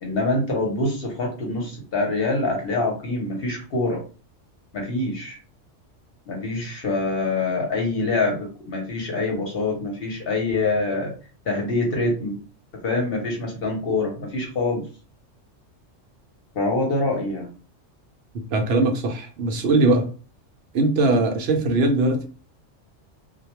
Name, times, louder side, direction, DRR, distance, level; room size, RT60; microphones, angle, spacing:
voice 1, 0.0-4.0 4.7-5.4 6.3-11.1 11.4-12.4 12.8-14.8 16.5-17.5 21.1-21.2, left 2 dB, 55° left, 0.8 m, -25 dB
voice 2, 18.5-20.1 20.7-22.3, right 2 dB, 65° right, 0.7 m, -20 dB
2.2 x 2.1 x 2.9 m
omnidirectional pair, 1.3 m